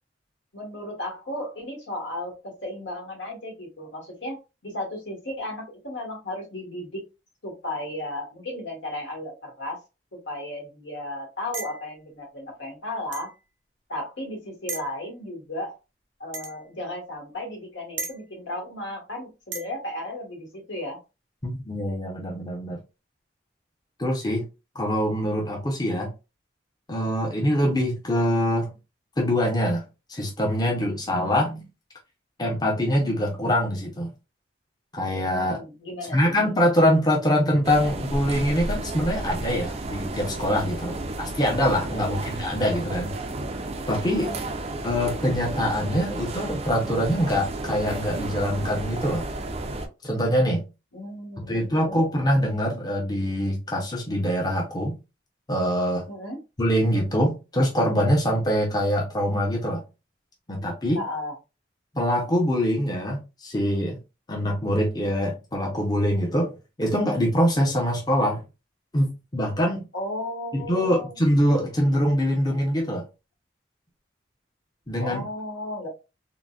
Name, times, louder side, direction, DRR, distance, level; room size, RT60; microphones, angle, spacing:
voice 1, 0.5-4.4 4.6-7.0 7.4-9.8 10.3-13.3 13.9-15.8 16.2-21.0 35.3-36.2 40.9-41.0 41.9-42.2 44.1-44.4 50.9-52.0 56.1-56.4 60.9-61.3 69.9-71.2 75.0-75.9, left 1 dB, 80° left, 1.4 m, -34 dB
sound 1, 11.5-11.9 13.1-13.3 14.7-14.9 16.3-16.6 18.0-18.2 19.5-19.7, right 4 dB, 75° right, 0.7 m, -34 dB
voice 2, 21.4-22.8 24.0-24.5 24.7-26.1 26.9-28.7 29.2-31.6 32.4-34.1 34.9-35.6 36.1-43.2 43.9-44.3 44.8-49.3 50.0-50.7 51.5-55.0 55.5-56.1 56.6-59.9 60.5-61.0 61.9-64.0 64.3-66.5 66.8-68.4 68.9-69.8 70.5-73.1 74.9-75.2, equal, 20° left, 0.6 m, -24 dB
sound 2, 37.6-49.9, right 2 dB, 35° right, 0.4 m, -32 dB
3.7 x 2.1 x 2.3 m
head